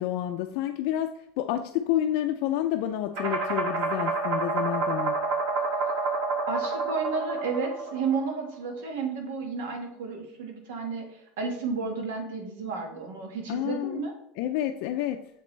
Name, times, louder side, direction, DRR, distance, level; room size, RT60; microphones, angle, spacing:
voice 1, 0.0-5.2 13.5-14.1 14.4-15.3, left 12 dB, 70° left, 5 dB, 0.4 m, -29 dB
sound 1, 3.1-8.5, right 3 dB, 65° right, 1.5 m, -29 dB
voice 2, 6.5-14.1, right 4 dB, 85° right, 3 dB, 1.5 m, -32 dB
6.6 x 5.1 x 3.2 m, 0.76 s
supercardioid pair, 115°, 0 cm